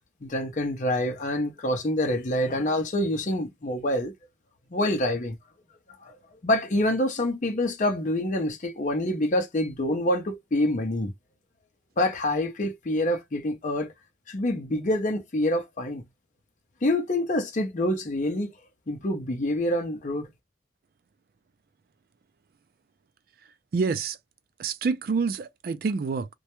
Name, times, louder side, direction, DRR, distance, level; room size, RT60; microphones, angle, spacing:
voice 1, 0.2-4.1 4.7-5.4 6.0-6.1 6.4-11.1 12.0-13.9 14.3-16.0 16.8-18.5 18.9-20.3, left 1 dB, 45° left, 0.5 m, -26 dB
voice 2, 23.7-24.2 24.6-26.3, right 4 dB, 55° right, 0.3 m, -27 dB
2.2 x 2.1 x 2.9 m
head